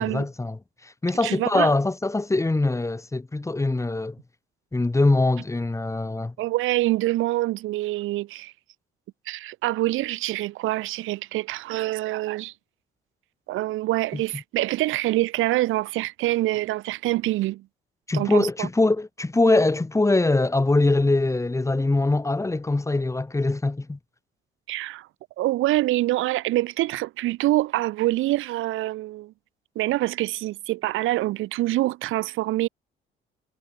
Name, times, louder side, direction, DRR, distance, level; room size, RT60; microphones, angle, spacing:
voice 1, 0.0-4.2 4.7-6.3 14.1-14.2 18.1-24.0, left 2 dB, 15° left, 1.4 m, -23 dB
voice 2, 1.2-1.7 6.4-8.5 9.3-12.5 13.5-17.6 18.1-18.7 24.7-25.1 25.4-29.3 29.8-32.7, right 17 dB, 90° right, 0.9 m, -25 dB
cardioid pair, 90°, 20 cm